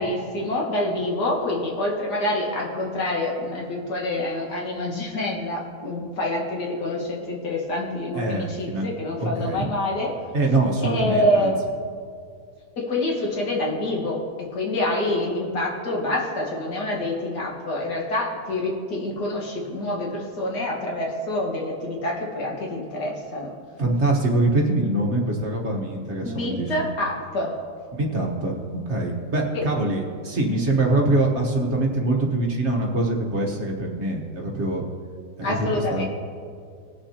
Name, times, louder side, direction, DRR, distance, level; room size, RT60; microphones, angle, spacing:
voice 1, 0.0-10.1 10.8-11.6 12.8-23.5 26.2-27.6 29.5-29.7 35.4-36.1, left 1 dB, 80° left, -2 dB, 2.2 m, -26 dB
voice 2, 8.1-8.9 9.2-9.7 10.3-11.5 23.8-26.7 28.0-28.6 28.8-34.8 35.4-36.1, right 2 dB, 45° right, -1 dB, 1.4 m, -24 dB
19.0 x 6.8 x 2.9 m, 2.2 s
omnidirectional pair, 1.7 m